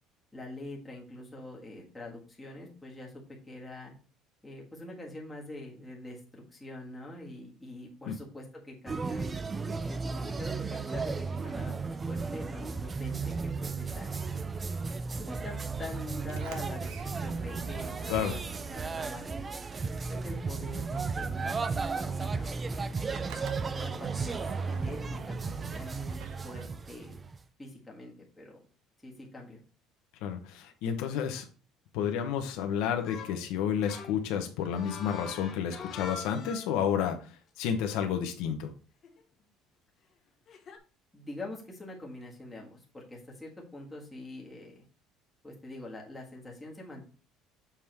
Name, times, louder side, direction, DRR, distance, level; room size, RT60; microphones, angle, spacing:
voice 1, 0.3-3.1 3.5-3.9 4.4-9.4 9.9-14.3 15.2-18.4 18.6-19.5 20.1-23.0 23.6-24.4 24.7-27.2 27.6-28.6 29.0-29.6 41.1-44.8 45.4-47.1, left 2 dB, 10° left, -3 dB, 1.5 m, -44 dB
sound 1, 8.9-27.4, right 4 dB, 15° right, 0.3 m, -34 dB
Sliding door, 16.2-20.5 20.7-27.1, right 6 dB, 75° right, 1.0 m, -48 dB
voice 2, 30.2-31.4 31.9-37.2 37.6-38.7, left 8 dB, 80° left, 5 dB, 1.0 m, -31 dB
sound 2, 33.0-33.4 33.8-36.9 39.0-39.2 40.5-40.8, left 5 dB, 35° left, 0.8 m, -44 dB
7.2 x 3.6 x 4.5 m, 0.37 s
cardioid pair, 170°, 0 cm